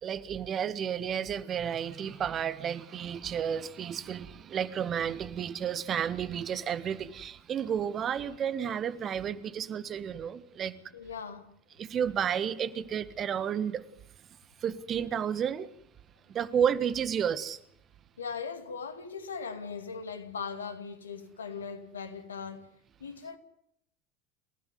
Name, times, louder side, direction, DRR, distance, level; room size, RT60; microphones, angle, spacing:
voice 1, 0.0-10.7 11.8-13.8 14.6-15.7 16.3-17.6, right 8 dB, 35° right, 1.5 m, -31 dB
voice 2, 10.9-11.5 18.2-22.7 23.0-23.4, left 5 dB, 75° left, 2.4 m, -39 dB
28.5 x 16.0 x 9.6 m
figure-of-eight pair, 70°, 0 cm